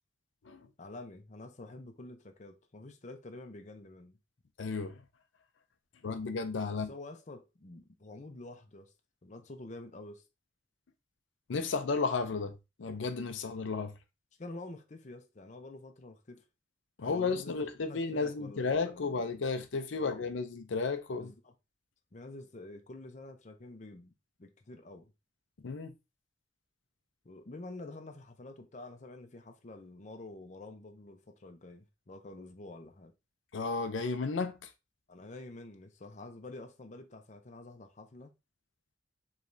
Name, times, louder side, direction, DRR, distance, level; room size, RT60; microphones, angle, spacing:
voice 1, 0.8-4.2 6.7-8.9 9.2-10.2 14.4-16.4 17.0-17.5 17.8-19.3 20.0-20.3 21.2-21.5 22.1-24.1 24.4-25.1 27.2-33.1 35.1-38.3, left 2 dB, 40° left, 0.6 m, -48 dB
voice 2, 4.6-5.0 6.0-6.9 11.5-13.9 17.0-21.3 25.6-25.9 33.5-34.7, left 4 dB, 80° left, 0.5 m, -33 dB
4.8 x 3.2 x 2.7 m
head